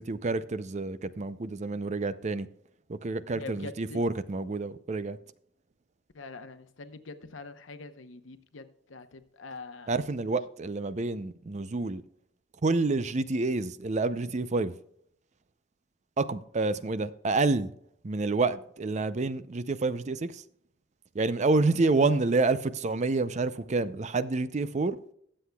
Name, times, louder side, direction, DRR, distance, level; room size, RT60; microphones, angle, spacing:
voice 1, 0.0-2.5 2.9-5.2 9.9-12.0 12.6-14.7 16.2-17.7 18.0-20.4 21.1-25.0, right 3 dB, 40° right, 0.5 m, -28 dB
voice 2, 3.3-4.0 6.1-8.6 8.9-9.9 22.0-22.1, left 3 dB, 85° left, 0.9 m, -43 dB
21.0 x 7.8 x 2.3 m
head